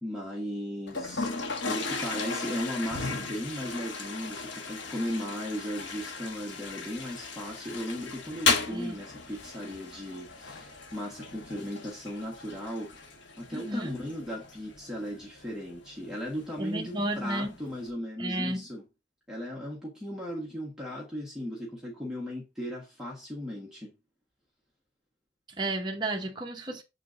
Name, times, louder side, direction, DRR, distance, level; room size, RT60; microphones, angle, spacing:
voice 1, 0.0-1.3 1.6-12.9 13.4-18.8 19.3-23.9, equal, 5° right, 1.5 m, -36 dB
Toilet flush, 0.9-17.9, left 4 dB, 80° left, 1.2 m, -36 dB
voice 2, 13.5-13.9 16.6-17.6 18.2-18.7 25.6-26.8, right 1 dB, 25° right, 0.9 m, -32 dB
7.3 x 3.9 x 3.8 m
head